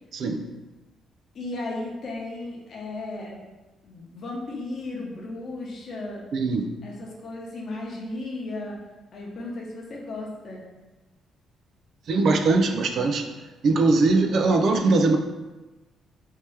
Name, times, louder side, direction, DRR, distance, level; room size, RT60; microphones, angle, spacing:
voice 1, 0.1-0.4 6.3-6.7 12.1-13.3 13.6-15.2, right 3 dB, 65° right, 5 dB, 0.4 m, -21 dB
voice 2, 1.3-3.4 3.8-6.3 6.8-8.8 9.1-10.6, left 2 dB, 55° left, -1 dB, 0.8 m, -35 dB
3.3 x 2.8 x 3.3 m, 1.1 s
cardioid pair, 90°, 0 cm